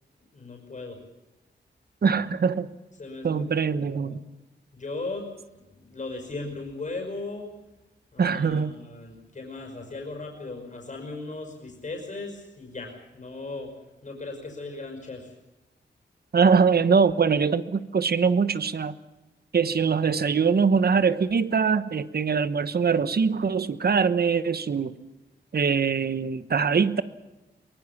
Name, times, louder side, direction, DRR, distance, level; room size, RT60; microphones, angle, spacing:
voice 1, 0.3-1.0 3.0-3.6 3.9-4.2 4.7-5.3 5.7-7.5 8.1-13.7 14.0-15.3, left 3 dB, 40° left, 3 dB, 5.6 m, -37 dB
voice 2, 2.0-2.7 3.2-4.2 8.2-8.7 16.3-18.9 19.5-25.0 25.5-27.0, right 5 dB, 55° right, 14 dB, 1.2 m, -23 dB
23.5 x 21.5 x 7.3 m, 1.0 s
wide cardioid pair, 155°, 19 cm